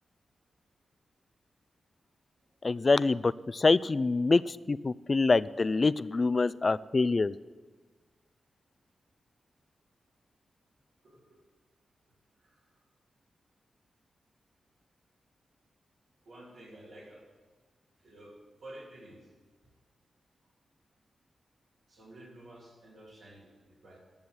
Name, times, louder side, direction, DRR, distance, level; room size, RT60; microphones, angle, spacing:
voice 1, 2.6-7.3, left 3 dB, 40° left, 17 dB, 0.4 m, -25 dB
voice 2, 11.0-11.4 12.4-12.7 16.2-17.2 18.0-19.3 21.9-24.0, right 1 dB, 85° right, -7 dB, 3.0 m, -51 dB
10.5 x 7.1 x 9.5 m, 1.4 s
cardioid pair, 70°, 0 cm